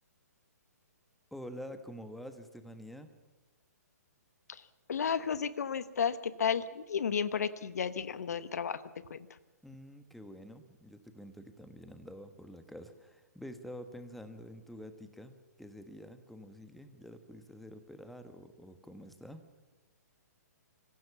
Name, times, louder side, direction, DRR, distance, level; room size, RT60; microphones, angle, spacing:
voice 1, 1.3-3.1 9.6-19.4, equal, ahead, 8 dB, 1.4 m, -48 dB
voice 2, 4.9-8.8 9.1-9.3, left 7 dB, 65° left, 15 dB, 1.0 m, -33 dB
25.0 x 15.5 x 7.1 m, 1.2 s
figure-of-eight pair, 130°, 9 cm